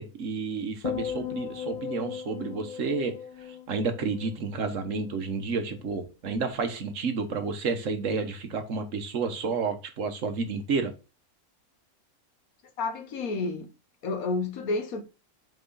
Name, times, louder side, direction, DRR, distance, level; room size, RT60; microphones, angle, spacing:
voice 1, 0.0-10.9, right 4 dB, 60° right, 1.3 m, -31 dB
sound 1, 0.8-5.2 5.5-5.9, left 8 dB, 35° left, 0.8 m, -37 dB
voice 2, 12.8-13.7 14.0-15.0, left 3 dB, 70° left, 1.5 m, -30 dB
5.9 x 4.9 x 4.0 m
omnidirectional pair, 1.5 m